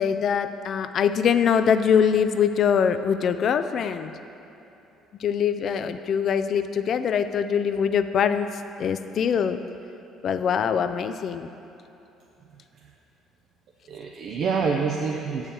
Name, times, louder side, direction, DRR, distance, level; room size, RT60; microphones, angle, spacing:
voice 1, 0.0-4.1 5.2-9.6 10.2-11.5, left 7 dB, 60° left, 10 dB, 0.4 m, -23 dB
voice 2, 12.5-13.0 13.9-15.5, right 5 dB, 60° right, 0 dB, 0.6 m, -27 dB
7.2 x 4.8 x 6.7 m, 3.0 s
supercardioid pair, 70°, 0 cm